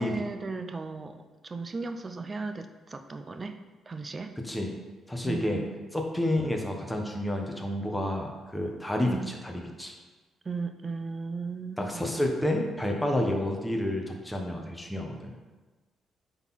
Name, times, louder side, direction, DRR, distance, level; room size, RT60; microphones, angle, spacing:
voice 1, 0.0-3.6 3.9-4.3 5.2-5.7 9.0-9.3 10.4-12.1, right 4 dB, 30° right, 7 dB, 0.6 m, -36 dB
voice 2, 5.1-5.6 5.9-9.9 11.8-15.4, left 1 dB, 5° left, 1 dB, 1.2 m, -30 dB
9.0 x 3.9 x 4.2 m, 1.3 s
cardioid pair, 90°, 0 cm